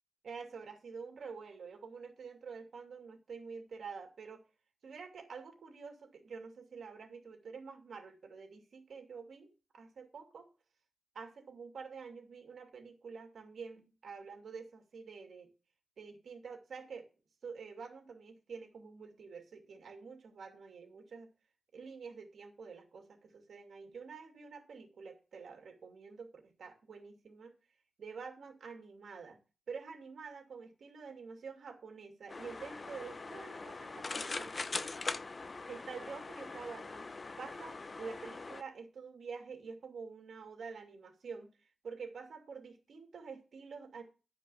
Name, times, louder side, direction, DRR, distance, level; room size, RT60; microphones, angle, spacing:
voice 1, 0.2-4.4 4.8-10.5 11.1-15.5 16.0-17.1 17.4-21.3 21.7-27.5 28.0-29.4 29.7-34.5 35.7-37.1 37.4-41.5 41.8-44.0, right 5 dB, 85° right, 3 dB, 2.6 m, -48 dB
sound 1, 32.3-38.6, left 3 dB, 40° left, 0.6 m, -42 dB
11.5 x 5.3 x 7.0 m, 0.33 s
wide cardioid pair, 110°, 0 cm